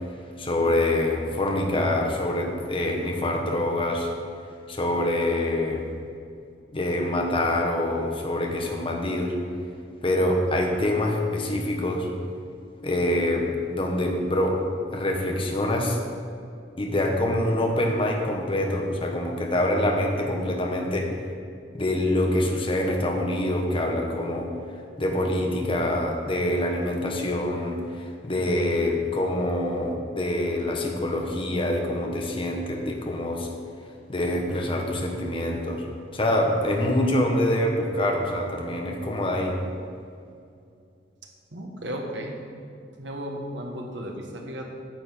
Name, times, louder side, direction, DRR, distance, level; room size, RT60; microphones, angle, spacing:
voice 1, 0.4-4.1 4.7-5.9 6.7-9.4 10.0-12.1 12.8-14.6 14.9-16.0 16.8-21.1 21.7-24.5 25.0-33.5 34.1-35.8 36.1-39.6, left 1 dB, 30° left, 1 dB, 1.1 m, -25 dB
voice 2, 41.5-42.4 43.0-44.7, equal, 80° right, 1 dB, 1.4 m, -34 dB
9.1 x 6.9 x 5.3 m, 2.4 s
head